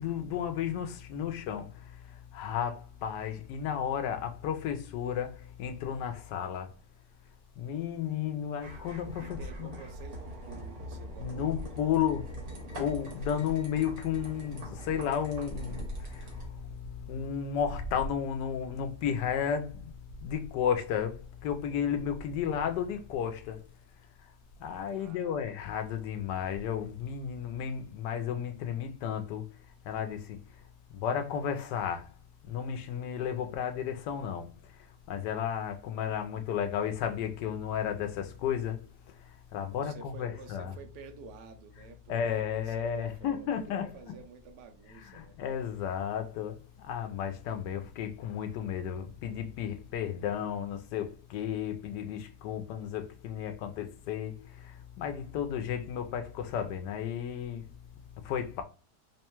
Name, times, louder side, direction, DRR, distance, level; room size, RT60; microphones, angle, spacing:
voice 1, 0.0-2.0 2.3-6.7 7.6-9.7 11.2-12.3 12.7-19.9 20.2-23.6 24.6-29.5 29.8-30.4 30.9-32.1 32.4-34.5 35.1-38.8 39.5-40.7 42.1-43.9 45.0-57.7 58.2-58.6, left 8 dB, 85° left, 1.2 m, -33 dB
sound 1, 8.6-16.5, right 1 dB, 60° right, 1.6 m, -43 dB
sound 2, 8.9-12.7 13.1-13.8 14.4-17.3 17.5-23.1 23.4-23.9 24.4-27.2, equal, 60° left, 1.0 m, -46 dB
voice 2, 9.2-11.7 25.0-25.4 39.7-45.4, right 6 dB, 80° right, 1.2 m, -50 dB
3.5 x 2.2 x 4.3 m
omnidirectional pair, 1.8 m